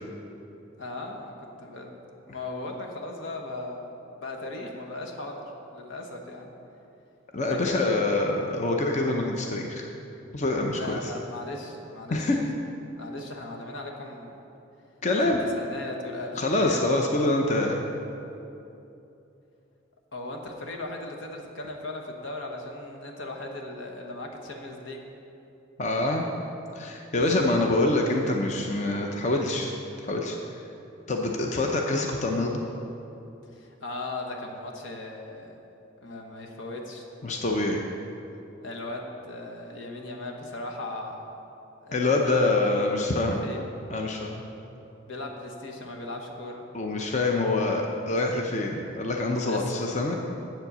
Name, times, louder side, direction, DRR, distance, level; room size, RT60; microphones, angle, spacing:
voice 1, 0.8-2.0 2.3-5.4 5.7-6.5 7.4-8.1 10.7-12.3 13.0-14.4 15.5-16.8 20.1-25.0 33.5-35.5 36.0-37.1 38.6-41.3 41.8-42.6 43.3-43.6 45.1-46.6 49.5-49.7, left 2 dB, 80° left, 1 dB, 1.2 m, -37 dB
voice 2, 7.3-9.9 10.3-11.1 12.1-12.4 15.0-15.4 16.3-17.9 25.8-26.2 26.7-29.7 30.0-30.4 31.1-32.6 37.2-37.8 41.9-43.5 43.9-44.4 46.7-50.2, left 2 dB, 35° left, 1 dB, 0.7 m, -25 dB
7.8 x 7.5 x 6.8 m, 2.8 s
head